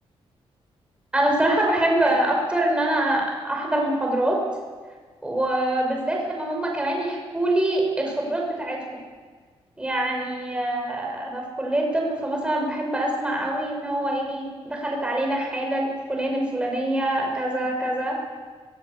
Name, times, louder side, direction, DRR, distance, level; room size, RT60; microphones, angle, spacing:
voice 1, 1.1-4.4 5.2-8.8 9.8-18.2, right 1 dB, 10° right, 0 dB, 6.6 m, -24 dB
23.5 x 21.5 x 8.5 m, 1.5 s
wide cardioid pair, 165°, 10 cm